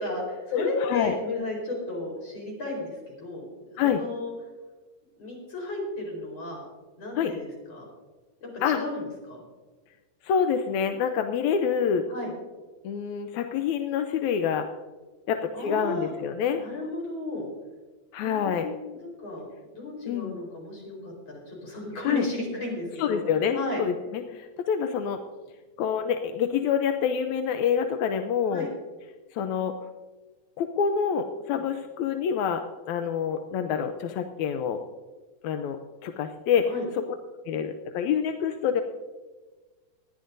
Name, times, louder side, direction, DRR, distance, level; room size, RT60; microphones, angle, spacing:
voice 1, 0.0-3.5 3.7-4.3 5.2-6.6 7.0-7.9 8.4-9.4 12.1-12.3 15.5-16.1 16.6-17.5 18.2-19.5 19.7-23.2 23.5-23.8 28.5-28.7 31.5-31.6 36.7-36.8, left 2 dB, 50° left, -1 dB, 5.3 m, -34 dB
voice 2, 0.5-1.1 3.8-4.0 7.2-7.3 8.6-8.8 10.2-12.1 12.8-14.7 15.3-16.6 18.1-18.7 20.1-20.3 22.1-22.3 23.0-25.2 25.8-28.7 29.3-29.7 30.6-34.8 35.4-36.7 37.5-38.8, left 7 dB, 75° left, 7 dB, 1.8 m, -27 dB
20.0 x 12.5 x 2.6 m, 1.3 s
omnidirectional pair, 3.7 m